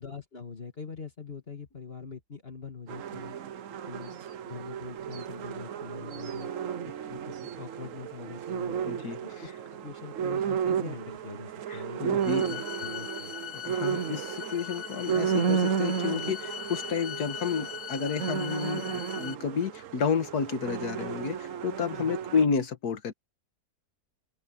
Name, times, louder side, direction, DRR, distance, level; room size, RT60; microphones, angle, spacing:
voice 1, 0.0-3.4 3.9-4.2 4.5-6.5 6.8-8.9 9.2-9.5 9.8-13.4 22.0-22.2, left 5 dB, 35° left, 2.2 m, -43 dB
sound 1, 2.9-22.5, right 7 dB, 60° right, 1.1 m, -33 dB
voice 2, 8.9-9.2 11.7-12.4 13.6-23.1, left 6 dB, 70° left, 1.9 m, -31 dB
sound 2, 12.2-19.3, left 10 dB, 55° left, 0.9 m, -40 dB
open air
omnidirectional pair, 1.7 m